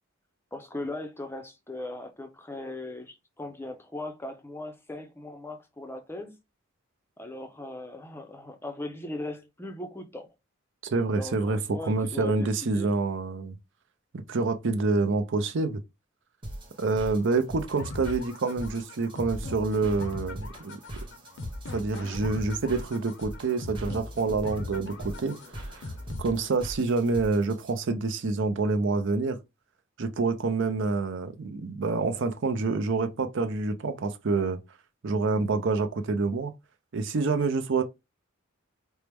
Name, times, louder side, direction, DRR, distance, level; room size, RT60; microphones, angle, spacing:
voice 1, 0.5-6.4 7.2-10.3 11.2-12.5 12.7-12.9, left 2 dB, 10° left, 0.5 m, -38 dB
voice 2, 10.8-13.6 14.1-15.8 16.8-20.8 21.7-25.4 25.7-25.9 26.2-29.4 30.0-34.6 35.0-36.5 36.9-37.8, right 3 dB, 60° right, 0.5 m, -27 dB
sound 1, 16.4-27.8, right 1 dB, 25° right, 1.0 m, -42 dB
sound 2, 17.8-26.8, left 2 dB, 55° left, 0.6 m, -40 dB
4.4 x 2.0 x 3.4 m
head